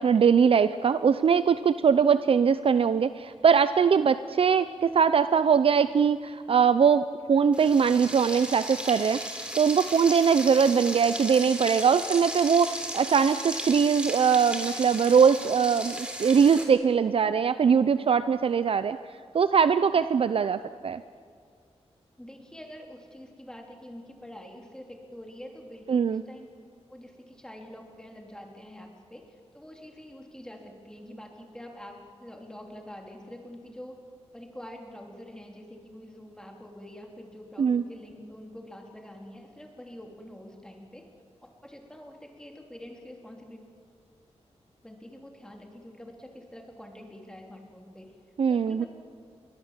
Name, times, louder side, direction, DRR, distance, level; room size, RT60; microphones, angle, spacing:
voice 1, 0.0-9.2 9.5-19.0 19.3-21.0 25.9-26.2 37.6-37.8 48.4-48.9, right 6 dB, 55° right, 13 dB, 0.5 m, -22 dB
Frying (food), 7.5-16.6, equal, 10° right, 3.6 m, -35 dB
voice 2, 22.2-26.5 26.9-34.0 34.3-41.0 41.4-43.6 44.8-48.1 48.5-48.9, left 1 dB, 5° left, 2 dB, 3.2 m, -46 dB
28.5 x 22.5 x 7.4 m, 2.1 s
wide cardioid pair, 135°, 11 cm